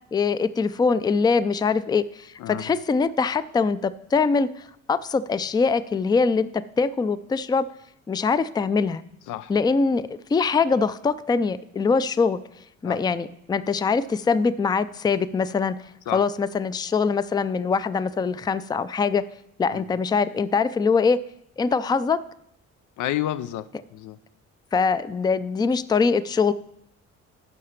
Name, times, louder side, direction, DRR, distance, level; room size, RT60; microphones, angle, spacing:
voice 1, 0.1-6.5 6.8-7.6 8.1-9.0 9.5-12.4 12.8-15.8 16.1-19.2 19.6-21.2 21.6-22.2 24.7-26.5, left 5 dB, 15° left, 15 dB, 0.3 m, -23 dB
voice 2, 23.0-24.2, left 12 dB, 80° left, 15 dB, 0.5 m, -30 dB
9.9 x 5.6 x 5.8 m, 0.76 s
cardioid pair, 90°, 30 cm